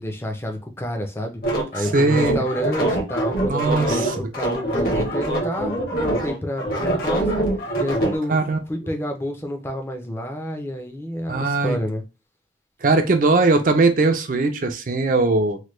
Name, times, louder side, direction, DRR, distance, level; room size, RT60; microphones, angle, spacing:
voice 1, 0.0-1.4 1.7-7.4 7.8-12.0, equal, 15° left, 0.5 m, -29 dB
sound 1, 1.4-8.2, right 1 dB, 55° left, 1.0 m, -24 dB
voice 2, 1.8-2.4 3.4-4.3 8.3-8.6 11.3-11.8 12.8-15.6, right 3 dB, 45° right, 0.5 m, -20 dB
3.2 x 2.2 x 3.0 m
head